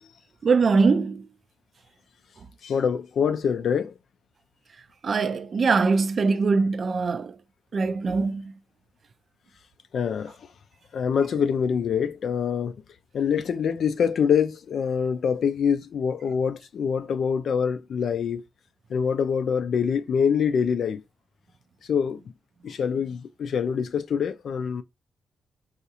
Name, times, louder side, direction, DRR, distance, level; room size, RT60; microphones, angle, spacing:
voice 1, 0.4-1.2 5.0-7.3 7.7-8.4, right 4 dB, 55° right, 0.4 m, -22 dB
voice 2, 2.6-3.9 9.9-10.4 10.9-12.7 13.1-18.4 18.9-21.0 21.9-22.2 22.6-24.8, left 7 dB, 70° left, 0.4 m, -25 dB
3.7 x 2.4 x 2.8 m
cardioid pair, 60°, 0 cm